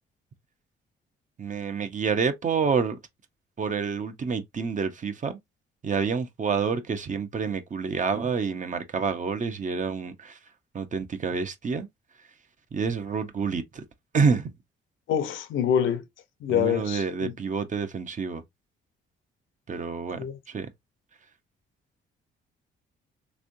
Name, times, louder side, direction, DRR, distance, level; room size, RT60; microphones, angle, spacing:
voice 1, 1.4-2.9 3.6-5.4 5.8-10.4 10.7-11.9 12.7-13.8 14.1-14.5 16.5-18.4 19.7-20.2 20.5-20.7, right 5 dB, 40° right, 0.8 m, -28 dB
voice 2, 15.1-16.1 16.4-17.4 20.1-20.4, left 9 dB, 80° left, 0.8 m, -26 dB
3.6 x 3.2 x 2.6 m
cardioid pair, 90°, 20 cm